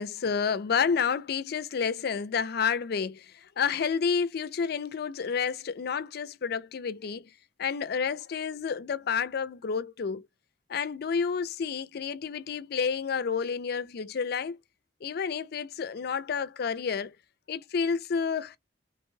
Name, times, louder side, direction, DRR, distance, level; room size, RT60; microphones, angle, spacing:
voice 1, 0.0-7.3 7.6-10.3 10.7-14.6 15.0-17.1 17.5-18.6, left 6 dB, 60° left, 0.4 m, -30 dB
3.0 x 2.2 x 3.1 m
head